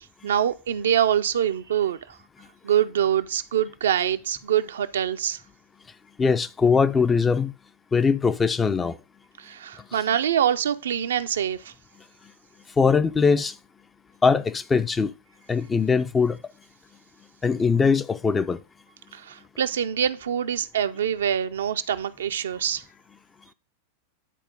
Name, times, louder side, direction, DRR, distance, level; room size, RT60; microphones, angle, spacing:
voice 1, 0.2-2.0 2.6-5.4 9.4-11.7 19.1-22.8, right 9 dB, 65° right, 0.6 m, -24 dB
voice 2, 6.2-7.5 7.9-9.0 12.8-13.5 14.2-15.1 15.5-16.4 17.4-18.6, left 5 dB, 15° left, 0.5 m, -21 dB
10.0 x 4.4 x 5.2 m
figure-of-eight pair, 90°, 0 cm